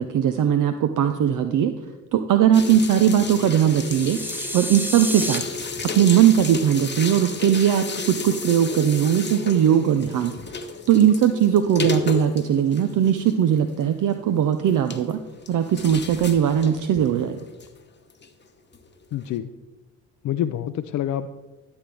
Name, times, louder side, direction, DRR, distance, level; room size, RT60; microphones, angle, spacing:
voice 1, 0.0-1.7 2.1-4.2 4.5-5.4 5.8-10.3 10.9-15.2 15.5-17.4, right 9 dB, 55° right, 9 dB, 0.6 m, -19 dB
sound 1, 2.5-18.3 18.7-18.9 19.2-19.3, left 4 dB, 30° left, 1.0 m, -33 dB
sound 2, 3.6-5.4, equal, 5° right, 0.7 m, -31 dB
voice 2, 19.1-19.5 20.2-21.3, left 11 dB, 50° left, 9 dB, 0.5 m, -26 dB
11.5 x 7.8 x 3.4 m, 1.2 s
hypercardioid pair, 45°, 37 cm